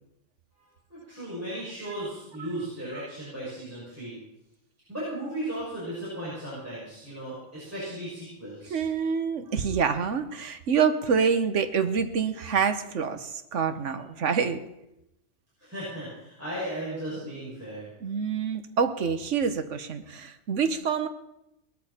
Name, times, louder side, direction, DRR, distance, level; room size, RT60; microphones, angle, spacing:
voice 1, 0.6-4.2 4.9-8.8 15.6-17.9, right 1 dB, 10° right, -9 dB, 6.7 m, -36 dB
voice 2, 8.7-14.6 18.0-21.1, right 6 dB, 75° right, 9 dB, 1.4 m, -26 dB
20.0 x 13.5 x 4.4 m, 0.87 s
omnidirectional pair, 1.3 m